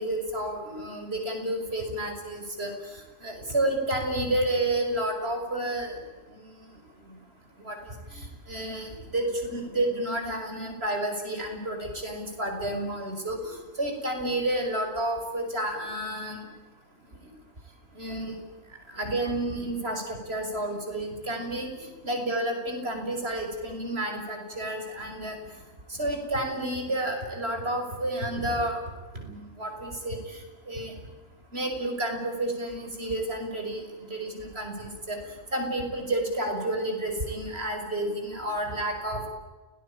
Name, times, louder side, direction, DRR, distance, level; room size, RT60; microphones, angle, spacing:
voice 1, 0.0-2.7 3.2-6.0 6.3-6.4 7.6-7.8 8.1-13.5 13.8-16.4 18.0-18.3 18.9-21.7 22.0-25.4 26.0-28.8 29.1-30.2 30.7-30.9 31.5-33.8 34.1-35.2 35.5-39.3, right 1 dB, 50° right, 3 dB, 6.2 m, -30 dB
29.5 x 19.5 x 8.9 m, 1.3 s
omnidirectional pair, 1.4 m